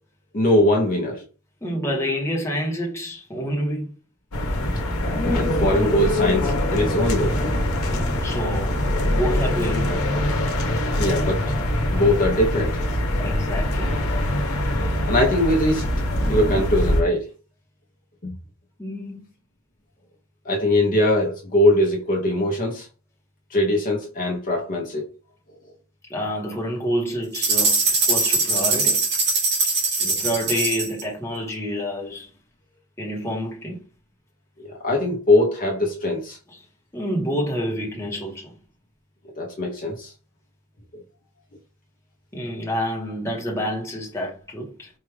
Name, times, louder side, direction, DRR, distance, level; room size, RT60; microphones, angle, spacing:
voice 1, 0.3-1.2 5.2-7.5 11.0-11.5 11.9-12.8 15.1-17.2 18.2-18.3 20.4-22.9 23.5-25.1 34.6-36.4 39.4-40.1 40.9-41.0, left 1 dB, 40° left, 0.8 m, -21 dB
voice 2, 1.6-3.9 7.8-8.8 9.0-10.0 13.2-14.0 18.8-19.2 26.1-29.0 30.0-32.3 33.0-33.8 36.5-36.6 36.9-38.5 42.3-44.9, equal, 15° left, 1.0 m, -28 dB
sound 1, 4.3-17.0, left 1 dB, 85° left, 0.9 m, -23 dB
sound 2, 27.3-31.0, right 3 dB, 55° right, 1.5 m, -21 dB
4.5 x 2.5 x 3.3 m
head